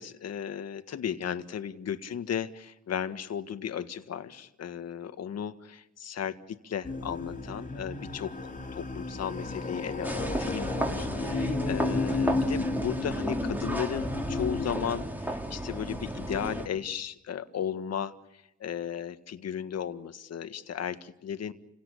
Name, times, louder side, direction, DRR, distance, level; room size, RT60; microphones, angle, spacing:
voice 1, 0.0-21.5, left 8 dB, 55° left, 10 dB, 1.8 m, -35 dB
sound 1, 6.8-14.7, left 3 dB, 25° left, 3.1 m, -33 dB
sound 2, 10.0-16.7, right 1 dB, 5° right, 3.4 m, -33 dB
29.5 x 17.5 x 8.4 m, 0.87 s
cardioid pair, 90°, 30 cm